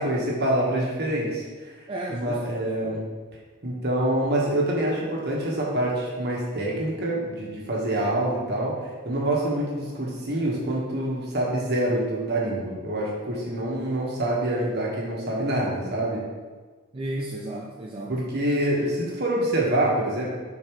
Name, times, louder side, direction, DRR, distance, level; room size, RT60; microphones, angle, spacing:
voice 1, 0.0-1.7 2.1-3.0 3.6-16.2 18.1-20.2, right 1 dB, 50° right, -3 dB, 1.5 m, -26 dB
voice 2, 1.9-2.7 16.9-18.2, right 1 dB, 25° right, -2 dB, 0.5 m, -33 dB
7.2 x 4.5 x 3.2 m, 1.4 s
head